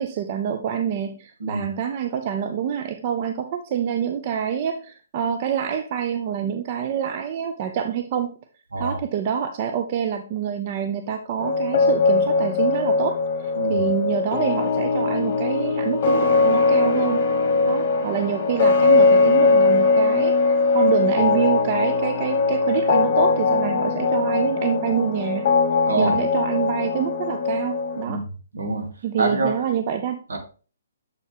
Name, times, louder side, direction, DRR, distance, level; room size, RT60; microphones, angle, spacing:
voice 1, 0.0-8.4 8.8-17.3 17.7-25.5 26.0-28.2 29.0-30.2, right 8 dB, 40° right, 0.5 m, -26 dB
sound 1, 11.4-28.0, left 4 dB, 45° left, 1.1 m, -20 dB
voice 2, 28.5-28.9 29.2-29.5 30.3-30.4, right 2 dB, 75° right, 1.5 m, -25 dB
6.9 x 4.2 x 3.4 m
hypercardioid pair, 140°, 0 cm